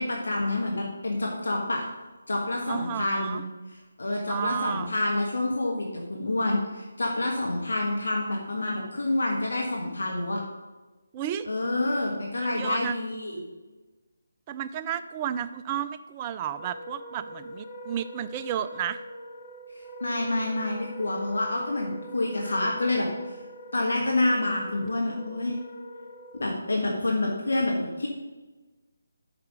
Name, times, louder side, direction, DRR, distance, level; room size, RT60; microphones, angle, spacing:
voice 1, 0.0-1.9 2.3-3.4 4.0-10.4 11.4-13.4 20.0-23.1 23.7-25.5 26.4-28.1, left 2 dB, 65° left, -1 dB, 1.5 m, -28 dB
voice 2, 2.7-3.4 4.3-4.9 11.1-11.5 12.4-13.0 14.5-19.0, right 10 dB, 20° right, 10 dB, 0.4 m, -32 dB
Wind instrument woodwind instrument, 16.5-26.6, equal, 5° left, 1.2 m, -43 dB
7.8 x 5.7 x 5.0 m, 1.2 s
figure-of-eight pair, 150°, 0 cm